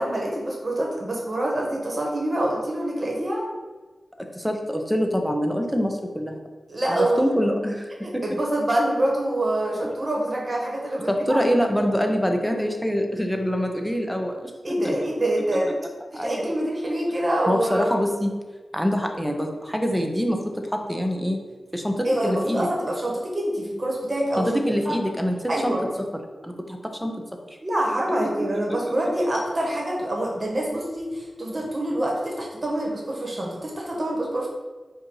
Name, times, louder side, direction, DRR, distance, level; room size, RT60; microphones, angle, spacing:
voice 1, 0.0-3.5 6.7-7.2 8.0-11.4 14.6-15.7 16.2-17.9 22.0-24.5 24.8-24.9 25.5-25.8 27.6-34.5, right 1 dB, 40° right, -2 dB, 1.3 m, -26 dB
voice 2, 4.2-6.4 6.9-8.4 11.1-14.5 16.1-16.4 17.5-18.4 18.7-21.5 21.7-22.7 24.4-26.1 26.4-27.3 28.7-28.8, equal, ahead, 3 dB, 0.7 m, -25 dB
4.4 x 2.6 x 4.6 m, 1.3 s
cardioid pair, 60°, 0 cm